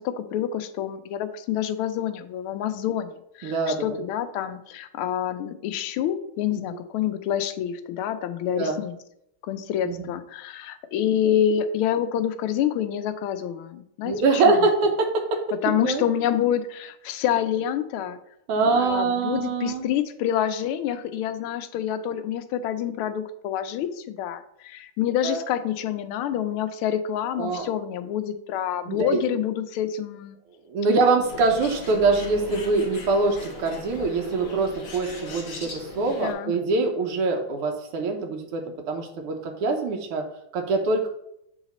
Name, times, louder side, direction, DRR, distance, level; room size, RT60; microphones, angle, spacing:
voice 1, 0.0-9.0 9.4-14.6 15.6-18.2 18.7-30.4 36.2-36.5, left 10 dB, 80° left, 10 dB, 1.4 m, -27 dB
voice 2, 3.4-4.0 8.5-8.8 9.8-10.1 14.1-15.4 15.8-16.0 18.5-19.9 25.2-25.4 27.4-27.7 28.9-29.2 30.7-40.2 40.5-41.1, right 3 dB, 90° right, 2 dB, 1.8 m, -24 dB
Bird, 31.2-36.3, left 3 dB, 40° left, 1.0 m, -39 dB
7.2 x 4.0 x 4.1 m, 0.77 s
omnidirectional pair, 2.4 m